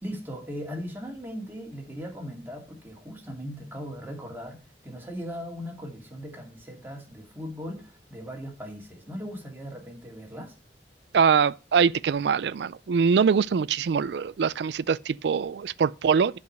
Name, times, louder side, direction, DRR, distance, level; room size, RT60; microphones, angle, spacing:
voice 1, 0.0-10.5, equal, 10° right, 2.3 m, -38 dB
voice 2, 11.1-16.4, right 6 dB, 70° right, 0.4 m, -23 dB
11.0 x 4.9 x 6.5 m
head